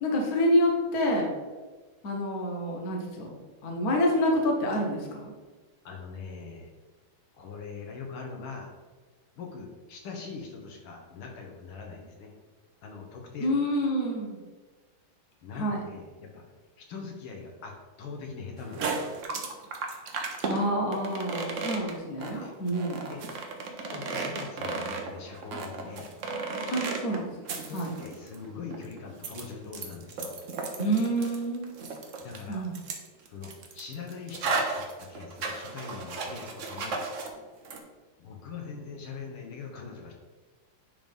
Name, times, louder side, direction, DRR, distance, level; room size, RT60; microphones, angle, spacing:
voice 1, 0.0-1.3 2.0-3.3 3.6-5.3 13.4-14.4 15.5-15.8 20.5-23.0 26.7-27.3 27.7-27.9 30.8-31.7 32.5-32.7, equal, 50° left, 0 dB, 1.5 m, -27 dB
voice 2, 5.9-6.7 7.3-8.7 9.4-12.3 12.8-13.5 15.4-16.4 16.8-17.7 18.0-19.2 22.3-22.6 23.1-23.2 23.9-26.1 27.7-30.4 32.2-32.7 33.3-37.0 38.2-40.1, left 5 dB, 75° left, 1 dB, 1.8 m, -42 dB
sound 1, 18.6-37.3 37.6-37.8, right 4 dB, 60° right, 0.8 m, -34 dB
10.5 x 3.8 x 3.6 m, 1.3 s
omnidirectional pair, 2.3 m